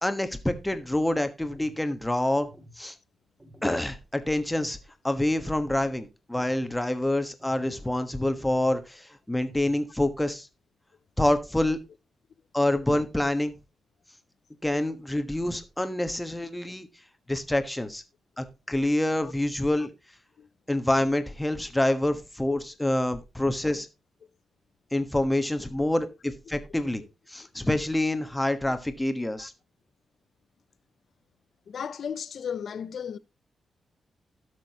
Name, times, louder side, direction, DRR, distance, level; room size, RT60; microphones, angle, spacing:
voice 1, 0.0-2.5 2.8-2.9 3.6-4.8 5.0-10.5 11.2-11.8 12.5-13.5 14.6-16.9 17.3-18.0 18.4-19.9 20.7-23.9 24.9-27.0 27.3-29.5, left 1 dB, 10° left, 1.3 m, -27 dB
sound 1, 1.4-1.8 2.4-2.8 3.4-3.8 4.4-4.8 5.4-5.8 6.4-6.8 7.4-7.8 8.4-8.8 9.4-9.8, equal, 20° right, 2.4 m, -51 dB
voice 2, 31.7-33.2, left 7 dB, 60° left, 0.6 m, -35 dB
17.0 x 6.3 x 2.9 m
cardioid pair, 115°, 0 cm